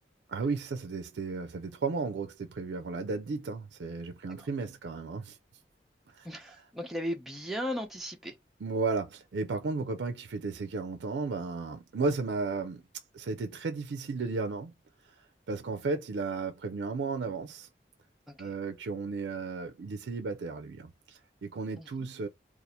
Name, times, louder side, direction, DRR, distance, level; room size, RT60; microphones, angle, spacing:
voice 1, 0.3-5.4 6.1-6.3 8.6-12.8 13.1-14.7 15.2-17.7 18.4-22.3, right 4 dB, 85° right, 0.4 m, -34 dB
voice 2, 6.2-8.4 18.3-18.5 21.8-22.1, equal, ahead, 0.7 m, -37 dB
2.7 x 2.4 x 4.1 m
head